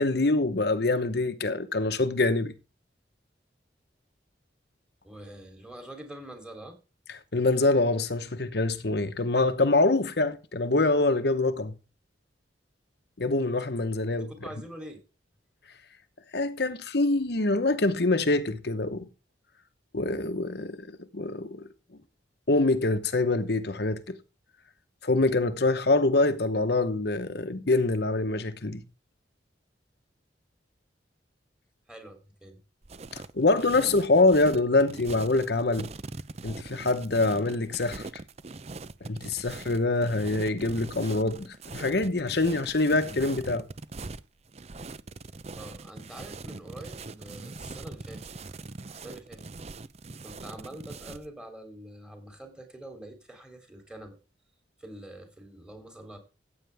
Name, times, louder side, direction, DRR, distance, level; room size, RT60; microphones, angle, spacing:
voice 1, 0.0-2.5 7.3-11.7 13.2-14.3 16.3-19.1 19.9-21.7 22.5-24.2 25.0-28.8 33.1-35.9 36.4-38.1 39.1-43.7, left 2 dB, 60° left, 1.0 m, -25 dB
voice 2, 5.0-6.8 13.8-15.0 31.9-32.6 45.5-48.3 48.9-49.4 50.2-54.2 54.8-56.2, right 1 dB, 5° right, 3.2 m, -45 dB
sound 1, 32.8-51.3, right 3 dB, 35° right, 0.6 m, -42 dB
15.0 x 9.0 x 3.5 m
head